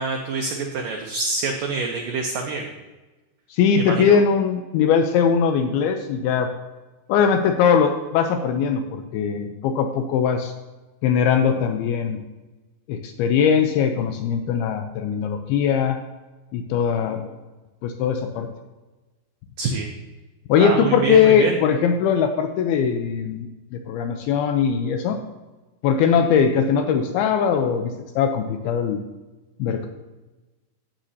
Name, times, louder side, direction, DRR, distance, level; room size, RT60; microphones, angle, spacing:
voice 1, 0.0-2.7 3.8-4.2 19.6-19.9 20.6-21.6, right 4 dB, 85° right, 2 dB, 1.9 m, -26 dB
voice 2, 3.5-6.5 7.1-10.5 11.0-12.2 12.9-16.0 16.5-17.3 17.8-18.5 20.5-25.2 25.8-29.0 29.6-29.9, left 7 dB, 90° left, 6 dB, 2.2 m, -20 dB
11.5 x 9.0 x 2.7 m, 1.2 s
omnidirectional pair, 5.0 m